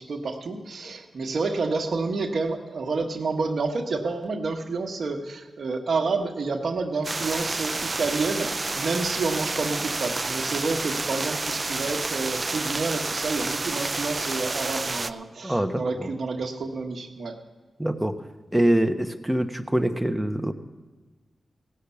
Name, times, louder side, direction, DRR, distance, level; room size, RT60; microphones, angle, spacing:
voice 1, 0.0-17.4, right 3 dB, 70° right, 4 dB, 1.4 m, -29 dB
sound 1, 7.0-15.1, right 3 dB, 40° right, 0.5 m, -29 dB
voice 2, 15.4-15.8 17.8-18.1 18.5-20.5, right 1 dB, 10° right, 7 dB, 1.1 m, -24 dB
17.0 x 6.6 x 7.1 m, 1.3 s
cardioid pair, 50°, 0 cm